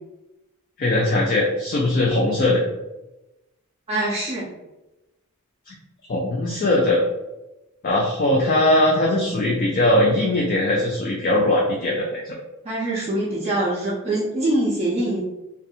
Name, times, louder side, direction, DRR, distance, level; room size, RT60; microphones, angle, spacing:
voice 1, 0.8-2.6 6.1-7.0 7.8-12.3, left 1 dB, 40° left, -2 dB, 0.3 m, -20 dB
voice 2, 3.9-4.5 12.6-15.2, right 1 dB, 30° right, -7 dB, 0.4 m, -24 dB
2.5 x 2.2 x 2.7 m, 0.98 s
head